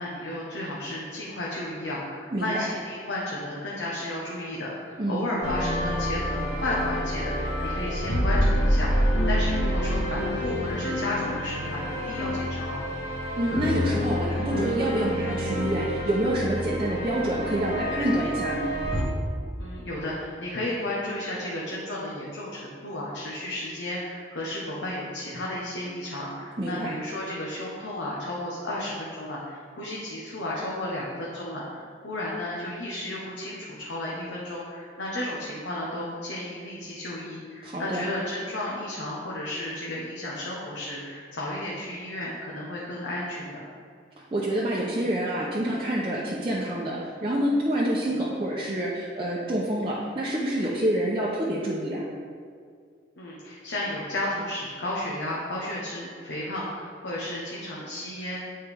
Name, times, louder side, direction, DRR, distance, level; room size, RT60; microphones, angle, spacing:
voice 1, 0.0-12.9 19.6-43.6 53.2-58.4, left 1 dB, 75° left, -5 dB, 1.0 m, -33 dB
voice 2, 2.3-2.6 5.0-5.3 13.4-18.7 26.6-26.9 37.6-38.1 44.2-52.0, right 1 dB, 30° right, -6 dB, 0.7 m, -27 dB
sound 1, 5.4-19.0, equal, 55° left, 1.6 m, -27 dB
8.9 x 4.4 x 3.5 m, 2.2 s
head